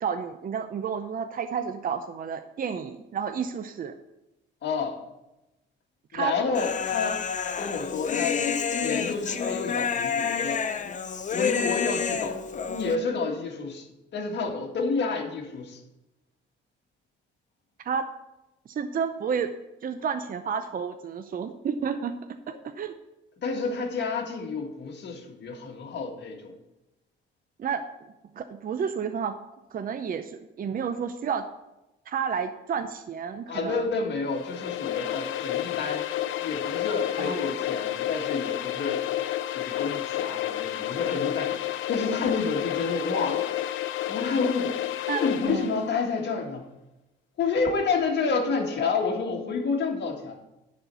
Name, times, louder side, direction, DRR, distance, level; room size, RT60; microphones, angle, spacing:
voice 1, 0.0-3.9 6.1-6.3 17.8-18.1 18.7-19.5 19.8-22.1 22.5-23.0 27.6-27.8 28.3-29.4 29.7-31.4 32.1-33.9 37.2-37.4 45.1-45.7, right 7 dB, 45° right, 8 dB, 0.6 m, -31 dB
voice 2, 4.6-5.0 6.1-7.2 7.6-8.4 8.8-10.6 11.3-15.8 22.5-22.6 23.4-26.5 33.5-36.1 36.4-39.0 39.5-43.4 44.1-44.8 45.1-46.7 47.4-50.4, left 4 dB, 60° left, 1 dB, 1.8 m, -29 dB
Human voice, 6.5-13.0, left 6 dB, 40° left, 0.7 m, -28 dB
sound 1, 34.3-45.9, left 13 dB, 80° left, 0.5 m, -30 dB
10.5 x 4.4 x 6.8 m, 0.95 s
cardioid pair, 90°, 20 cm